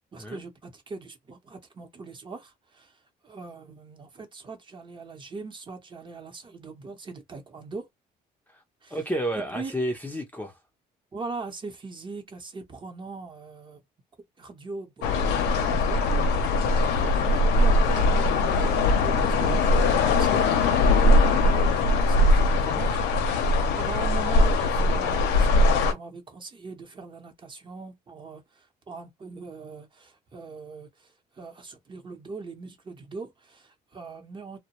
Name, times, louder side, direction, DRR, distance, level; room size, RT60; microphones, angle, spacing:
voice 1, 0.1-2.9 3.2-7.8 8.8-9.0 9.3-9.7 11.1-13.8 14.4-16.0 16.7-20.8 21.1-23.1 23.7-31.1 31.4-34.6, right 4 dB, 30° right, 0.8 m, -41 dB
voice 2, 8.9-10.5 16.5-16.7, right 1 dB, 10° left, 0.6 m, -31 dB
sound 1, 15.0-25.9, left 2 dB, 85° left, 0.6 m, -21 dB
2.2 x 2.1 x 2.9 m
cardioid pair, 110°, 17 cm